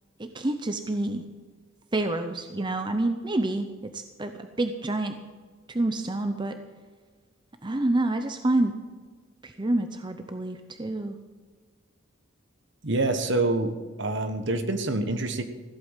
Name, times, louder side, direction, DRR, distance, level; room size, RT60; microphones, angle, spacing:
voice 1, 0.2-1.2 1.9-5.1 5.7-6.6 7.6-8.7 9.4-11.2, right 2 dB, 20° right, 7 dB, 0.6 m, -28 dB
voice 2, 12.8-13.7 14.0-15.4, right 2 dB, 55° right, 9 dB, 1.2 m, -26 dB
15.0 x 8.3 x 7.4 m, 1.5 s
head